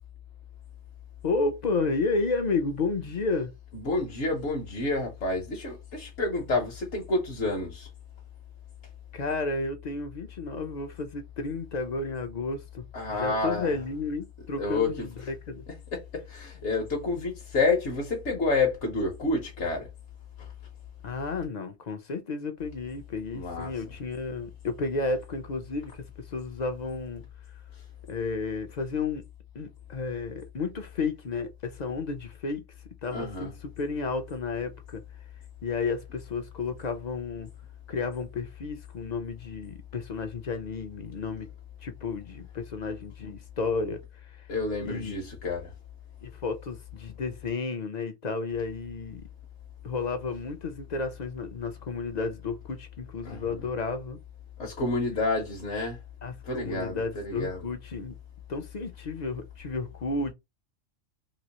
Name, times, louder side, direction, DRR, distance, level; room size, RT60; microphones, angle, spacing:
voice 1, 1.2-3.5 9.1-12.8 13.1-15.6 21.0-27.2 28.1-29.2 29.5-32.6 33.0-35.0 35.6-37.5 37.9-41.5 41.8-44.5 44.8-45.2 46.2-49.2 49.8-54.2 56.2-58.1 58.5-60.3, left 3 dB, 45° left, 0.6 m, -32 dB
voice 2, 3.7-7.9 12.9-13.8 14.6-15.1 15.9-19.9 20.4-20.5 23.3-23.7 33.1-33.5 43.2-43.3 44.5-45.7 53.2-53.4 54.6-56.0 56.4-57.6, left 3 dB, 65° left, 1.2 m, -29 dB
3.0 x 2.9 x 2.9 m
omnidirectional pair, 1.3 m